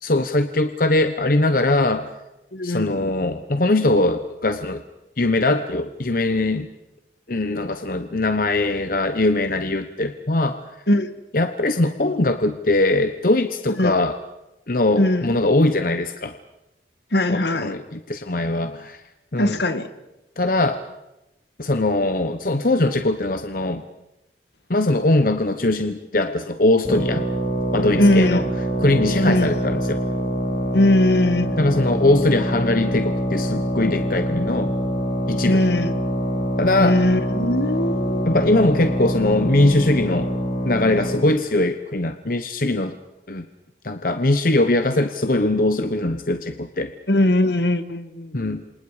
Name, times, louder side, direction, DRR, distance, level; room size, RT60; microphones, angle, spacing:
voice 1, 0.0-2.1 2.6-4.8 5.2-6.7 7.3-10.6 11.3-14.2 14.7-16.3 17.3-19.0 19.3-19.6 20.4-20.8 21.6-23.8 24.7-27.3 27.7-28.5 28.8-30.0 31.6-34.8 35.3-35.6 36.6-37.0 38.2-40.3 40.6-42.9 43.3-43.5 43.8-46.9 48.3-48.6, left 2 dB, 50° left, 8 dB, 1.1 m, -21 dB
voice 2, 2.5-3.1 10.9-11.1 13.8-13.9 15.0-15.3 17.1-17.7 19.4-19.9 28.0-28.4 29.2-29.5 30.7-31.6 35.5-35.9 36.8-38.3 47.1-48.6, left 1 dB, 75° left, 10 dB, 1.7 m, -20 dB
sound 1, 26.8-41.4, equal, 35° left, 4.4 m, -24 dB
28.5 x 26.5 x 5.0 m, 0.93 s
head